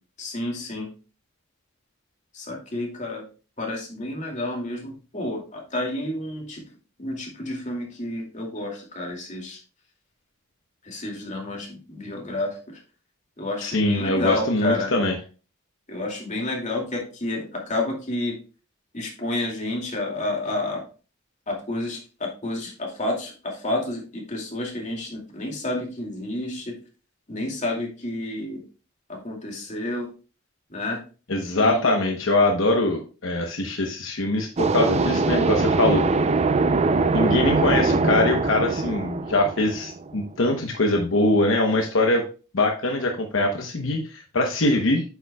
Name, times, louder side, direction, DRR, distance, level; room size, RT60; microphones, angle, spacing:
voice 1, 0.2-0.9 2.3-3.3 3.6-6.6 7.0-9.6 10.8-12.8 13.4-14.9 15.9-18.4 18.9-20.8 21.5-26.8 27.3-28.6 29.1-30.1 30.7-31.0 31.6-31.9, left 2 dB, 40° left, -1 dB, 2.4 m, -30 dB
voice 2, 13.6-15.1 31.3-36.0 37.1-42.2 42.5-45.0, left 2 dB, 70° left, 3 dB, 1.0 m, -22 dB
sound 1, 34.6-40.2, right 3 dB, 35° right, 0.5 m, -22 dB
8.8 x 7.0 x 2.3 m, 0.35 s
head